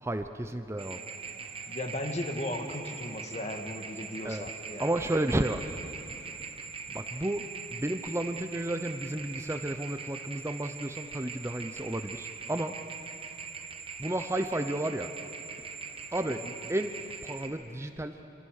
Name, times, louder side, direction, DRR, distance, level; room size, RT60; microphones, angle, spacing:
voice 1, 0.0-1.0 4.2-4.4 4.8-5.7 6.9-7.4 7.7-12.8 14.0-15.1 16.1-16.4 16.7-16.9 17.2-18.2, right 1 dB, 15° right, 8 dB, 0.6 m, -32 dB
sound 1, 0.8-17.5, right 5 dB, 30° right, 1.5 m, -42 dB
voice 2, 1.7-5.1 16.3-16.5, left 1 dB, 40° left, 5 dB, 1.7 m, -36 dB
25.0 x 24.5 x 6.6 m, 2.8 s
head